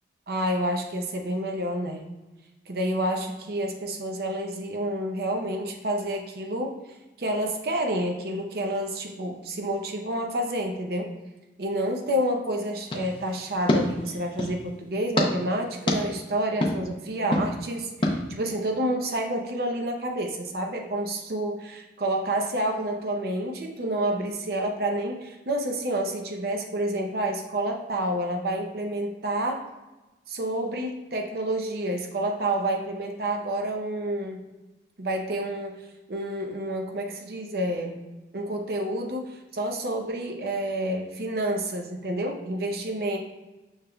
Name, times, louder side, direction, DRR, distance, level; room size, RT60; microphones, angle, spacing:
voice 1, 0.3-2.0 2.7-6.7 7.2-11.1 11.6-29.6 30.3-34.5 35.0-38.0 38.3-43.2, right 1 dB, 60° right, 2 dB, 0.6 m, -29 dB
sound 1, 12.9-14.6 15.2-15.3 15.9-16.0 16.6-16.7 17.3-17.5 18.0-18.1, left 1 dB, 30° left, 0.6 m, -26 dB
6.3 x 3.6 x 2.2 m, 1.1 s
head